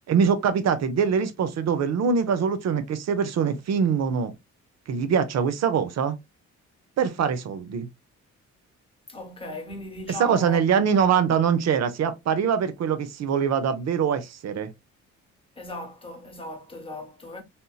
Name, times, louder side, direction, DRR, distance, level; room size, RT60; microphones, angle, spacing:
voice 1, 0.1-4.3 4.9-6.1 7.0-7.9 10.2-14.7, right 7 dB, 60° right, 0.8 m, -23 dB
voice 2, 9.1-10.6 10.9-11.2 15.6-17.4, left 2 dB, 20° left, 1.2 m, -38 dB
3.5 x 2.7 x 2.3 m
cardioid pair, 90°, 30 cm